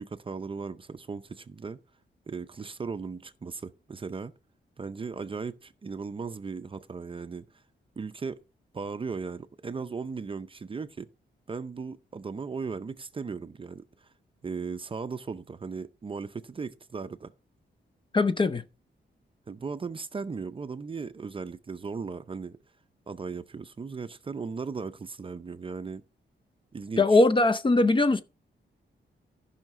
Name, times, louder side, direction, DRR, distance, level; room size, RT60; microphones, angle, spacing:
voice 1, 0.0-1.8 2.3-4.3 4.8-7.5 8.0-8.4 8.7-11.1 11.5-14.1 14.4-17.3 19.5-22.6 23.1-26.0 26.7-27.2, right 5 dB, 30° right, 0.5 m, -37 dB
voice 2, 18.1-18.6 27.0-28.2, left 2 dB, 25° left, 0.5 m, -21 dB
14.0 x 5.7 x 3.6 m
wide cardioid pair, 165°, 19 cm